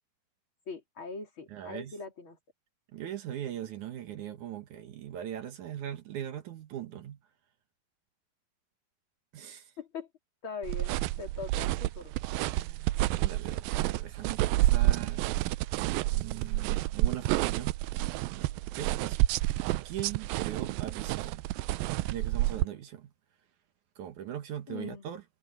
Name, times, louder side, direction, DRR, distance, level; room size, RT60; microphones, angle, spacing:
voice 1, 0.7-2.4 9.8-10.1 10.4-12.2 24.7-25.1, left 5 dB, 35° left, 3.8 m, -41 dB
voice 2, 1.5-2.0 2.9-7.2 9.3-9.7 12.5-15.2 16.1-17.8 18.3-18.5 18.8-19.2 19.8-21.4 22.1-23.1 24.0-25.2, right 10 dB, 65° right, 2.3 m, -40 dB
sound 1, 10.6-22.6, right 17 dB, 80° right, 2.2 m, -29 dB
omnidirectional pair, 4.5 m